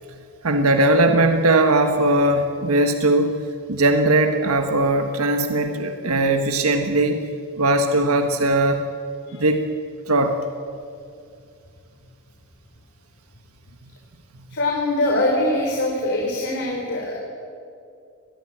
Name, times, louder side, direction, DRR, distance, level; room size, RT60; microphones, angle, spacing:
voice 1, 0.4-3.3 3.7-8.8 9.4-9.6 10.1-10.3, right 2 dB, 80° right, 6 dB, 1.5 m, -19 dB
voice 2, 14.5-17.1, left 1 dB, 55° left, -1 dB, 3.7 m, -23 dB
24.5 x 20.0 x 8.7 m, 2.4 s
head